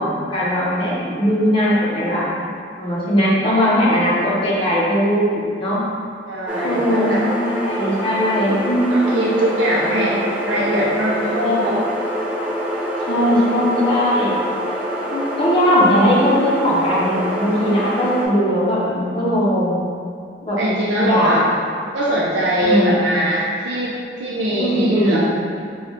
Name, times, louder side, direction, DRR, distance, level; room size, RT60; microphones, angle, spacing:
voice 1, 0.0-2.3 2.8-5.8 6.6-9.3 11.4-11.8 13.1-14.4 15.1-19.8 20.4-20.6 21.0-21.4 22.6-23.0 24.6-25.2, equal, 30° left, -7 dB, 0.7 m, -19 dB
voice 2, 6.3-7.2 8.9-11.8 20.6-21.4 21.9-25.2, equal, 85° right, -7 dB, 0.5 m, -21 dB
sound 1, 6.5-18.3, equal, 5° right, 0.4 m, -26 dB
3.9 x 2.2 x 3.1 m, 2.4 s
head